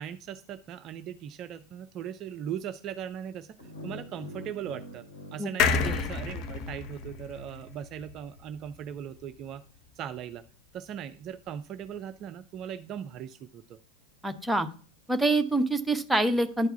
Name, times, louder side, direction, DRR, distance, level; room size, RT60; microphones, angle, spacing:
voice 1, 0.0-5.0 5.3-9.6 10.0-10.4 10.7-13.8, right 9 dB, 35° right, 11 dB, 0.4 m, -39 dB
sound 1, 3.6-6.7, left 1 dB, 65° left, 3.0 m, -45 dB
sound 2, 5.6-9.1 9.5-9.6 9.8-9.9, left 5 dB, 40° left, 0.8 m, -30 dB
voice 2, 14.2-14.7 15.1-16.7, right 2 dB, 5° right, 6 dB, 0.8 m, -25 dB
10.0 x 4.6 x 5.6 m, 0.40 s
figure-of-eight pair, 90°, 0 cm